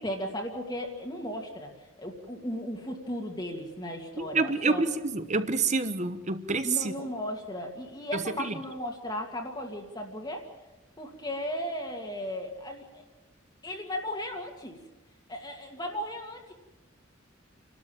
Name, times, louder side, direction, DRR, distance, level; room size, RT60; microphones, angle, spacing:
voice 1, 0.0-1.7 2.0-4.8 6.6-10.5 11.0-13.0 13.6-14.8 15.3-16.5, left 1 dB, 20° left, 1 dB, 2.2 m, -36 dB
voice 2, 4.2-6.9 8.4-8.5, right 4 dB, 35° right, 11 dB, 1.2 m, -27 dB
29.5 x 12.5 x 8.9 m, 1.1 s
head